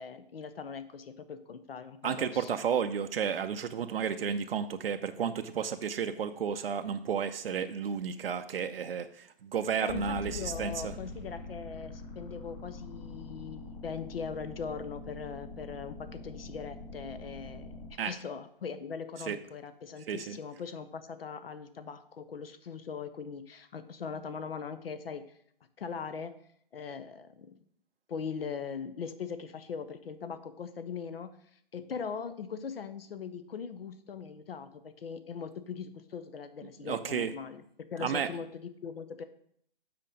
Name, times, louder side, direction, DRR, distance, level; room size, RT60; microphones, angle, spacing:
voice 1, 0.0-2.6 9.8-17.8 18.0-25.2 25.8-26.3 26.7-27.6 28.1-31.3 31.7-39.2, left 6 dB, 80° left, 11 dB, 0.7 m, -40 dB
voice 2, 2.0-10.9 18.0-18.1 19.3-19.4 20.1-20.4 36.8-37.3 38.0-38.3, right 7 dB, 80° right, 8 dB, 0.6 m, -32 dB
sound 1, 9.9-17.9, left 3 dB, 20° left, 1.9 m, -44 dB
7.7 x 4.4 x 5.2 m, 0.66 s
hypercardioid pair, 135°, 29 cm